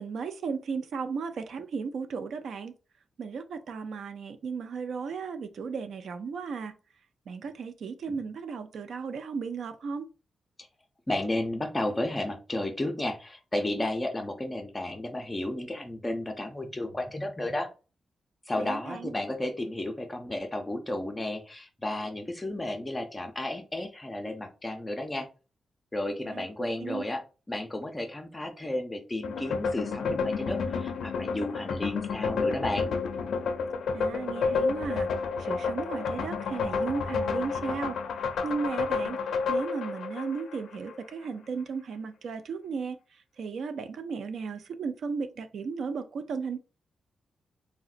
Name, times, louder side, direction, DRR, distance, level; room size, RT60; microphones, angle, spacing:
voice 1, 0.0-2.7 3.2-6.7 7.3-10.1 18.6-19.1 26.3-26.5 26.8-27.0 33.9-35.1 35.4-39.2 39.5-43.0 43.4-46.6, right 5 dB, 70° right, 0.4 m, -35 dB
voice 2, 11.1-17.7 18.5-25.3 25.9-27.2 27.5-32.9, left 1 dB, 15° left, 0.5 m, -33 dB
sound 1, 29.2-41.0, left 5 dB, 85° left, 0.4 m, -30 dB
3.7 x 2.1 x 2.4 m
wide cardioid pair, 135°, 0 cm